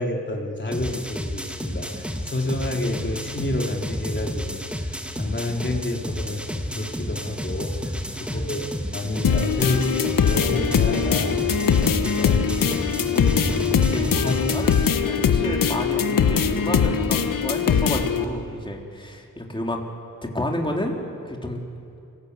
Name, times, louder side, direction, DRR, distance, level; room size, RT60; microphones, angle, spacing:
voice 1, 0.0-8.6 8.9-11.4 11.9-13.2 14.2-15.0, left 1 dB, 35° left, 0 dB, 3.6 m, -29 dB
sound 1, 0.7-14.9, equal, 5° right, 2.3 m, -31 dB
sound 2, 5.2-5.3 5.5-5.6 5.8-6.0 6.5-6.7 7.1-7.4 7.8-7.9 8.1-8.2 8.4-8.7 9.1-9.4 9.8-10.0, right 2 dB, 25° right, 7.3 m, -43 dB
voice 2, 8.1-8.5 13.8-19.8 20.2-21.0 21.3-21.6, left 1 dB, 15° left, 0 dB, 3.7 m, -30 dB
sound 3, 9.2-18.2, left 7 dB, 80° left, 1.5 m, -21 dB
28.0 x 19.0 x 8.3 m, 2.5 s
cardioid pair, 70°, 33 cm